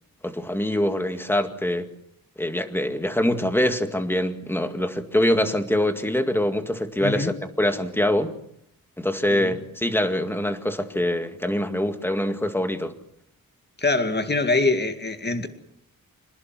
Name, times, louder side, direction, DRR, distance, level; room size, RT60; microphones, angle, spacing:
voice 1, 0.2-1.9 2.4-8.4 9.0-12.9, left 1 dB, 5° left, 2.0 m, -24 dB
voice 2, 7.0-7.3 9.3-9.6 13.8-15.5, left 3 dB, 30° left, 2.2 m, -24 dB
27.5 x 19.5 x 7.7 m
wide cardioid pair, 165°, 35 cm